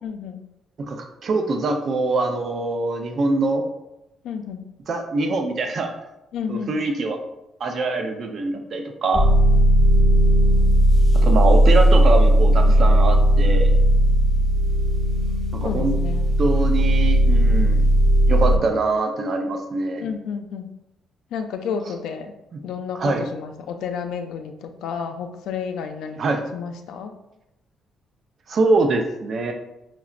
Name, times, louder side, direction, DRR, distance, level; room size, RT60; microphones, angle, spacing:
voice 1, 0.0-0.4 4.2-4.7 6.3-6.8 12.6-12.8 15.6-16.3 20.0-20.7 21.3-22.3 22.6-26.2 26.5-27.1, left 6 dB, 85° left, 5 dB, 0.4 m, -31 dB
voice 2, 0.9-3.6 4.9-5.9 6.5-7.2 7.6-9.3 11.1-13.7 15.5-16.0 16.4-17.9 18.3-20.1 22.5-22.6 22.9-23.2 26.2-26.4 28.5-29.5, right 3 dB, 55° right, 4 dB, 0.5 m, -23 dB
sound 1, 9.1-18.6, equal, 10° left, 0.6 m, -16 dB
5.7 x 2.0 x 2.4 m, 0.90 s
cardioid pair, 90°, 0 cm